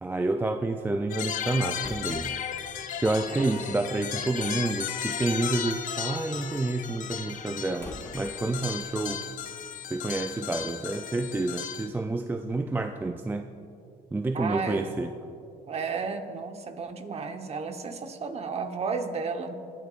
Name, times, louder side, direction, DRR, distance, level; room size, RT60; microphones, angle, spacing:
voice 1, 0.0-2.3 3.0-9.3 9.9-13.5 14.1-15.1, right 2 dB, 10° right, 6 dB, 0.4 m, -29 dB
Slam, 0.7-10.2, left 2 dB, 10° left, 1.4 m, -51 dB
sound 1, 1.1-11.9, left 8 dB, 50° left, 0.8 m, -35 dB
voice 2, 3.3-3.6 14.3-14.9 15.7-19.5, right 5 dB, 40° right, 6 dB, 1.1 m, -33 dB
24.5 x 11.0 x 2.5 m, 2.6 s
cardioid pair, 110°, 17 cm